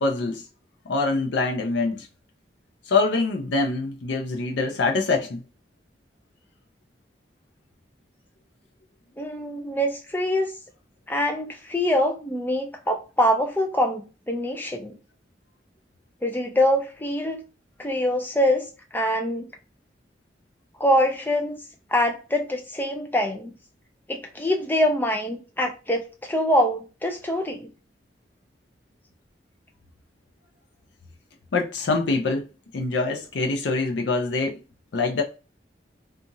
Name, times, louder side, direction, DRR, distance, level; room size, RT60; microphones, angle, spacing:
voice 1, 0.0-0.4 0.9-2.1 2.9-5.4 31.5-32.5 32.7-34.6 34.9-35.2, left 3 dB, 75° left, 0.4 m, -24 dB
voice 2, 9.2-10.5 11.1-14.9 16.2-17.4 17.8-18.7 18.9-19.5 20.8-21.6 21.9-23.5 24.1-26.0 26.3-27.7, equal, 10° left, 0.4 m, -24 dB
2.8 x 2.4 x 2.5 m
head